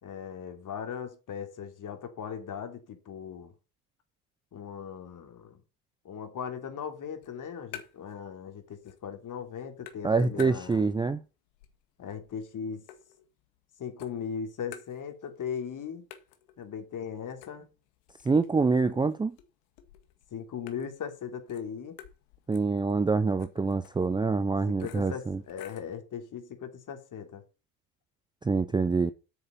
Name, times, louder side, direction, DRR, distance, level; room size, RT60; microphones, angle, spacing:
voice 1, 0.0-3.5 4.5-5.6 6.0-10.9 12.0-12.8 13.8-16.1 16.6-17.7 20.3-22.0 24.7-27.4, left 7 dB, 40° left, 3.1 m, -38 dB
sound 1, 7.2-8.2 8.5-9.2 9.5-11.1 11.5-13.6 14.0-15.4 15.7-15.8 16.1-26.0, left 11 dB, 75° left, 2.0 m, -51 dB
voice 2, 10.0-11.2 18.2-19.4 22.5-25.4 28.4-29.1, right 4 dB, 10° right, 0.5 m, -26 dB
9.0 x 6.8 x 6.7 m
hypercardioid pair, 90°, 46 cm